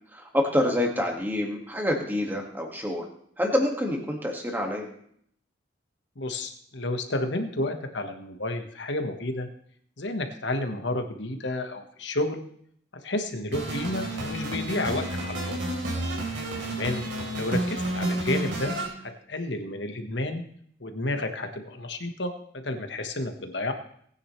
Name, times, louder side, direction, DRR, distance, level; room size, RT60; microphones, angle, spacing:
voice 1, 0.1-3.1 3.4-4.9, left 1 dB, 10° right, 1 dB, 1.9 m, -27 dB
voice 2, 6.2-9.5 10.0-12.4 13.0-15.6 16.7-17.0 17.3-18.7 19.0-20.4 20.8-23.7, left 1 dB, 65° left, 6 dB, 1.4 m, -31 dB
sound 1, 13.5-18.8, right 1 dB, 75° right, 4.1 m, -30 dB
19.5 x 9.8 x 3.3 m, 0.66 s
head